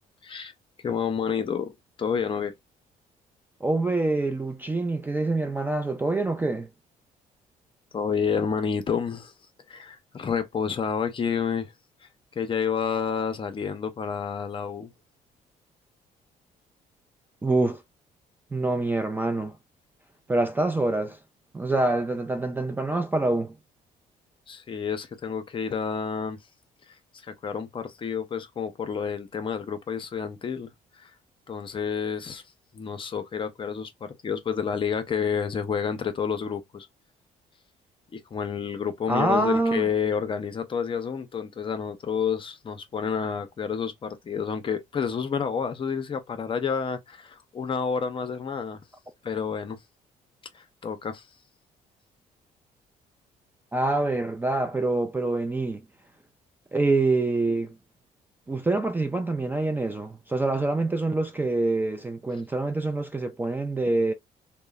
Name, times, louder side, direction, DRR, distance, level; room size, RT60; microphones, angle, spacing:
voice 1, 0.8-2.5 7.9-9.3 9.7-11.7 12.0-14.9 24.5-26.4 26.9-31.1 31.5-32.4 32.7-36.9 38.1-48.8 49.2-49.8 50.5-51.3, left 6 dB, 35° left, 0.6 m, -29 dB
voice 2, 3.6-6.7 17.4-17.8 18.5-19.5 20.3-21.2 21.5-23.6 39.1-39.9 53.7-55.8 56.7-57.8 58.5-64.1, right 2 dB, 15° right, 0.3 m, -25 dB
2.9 x 2.1 x 2.2 m
cardioid pair, 110°, 15 cm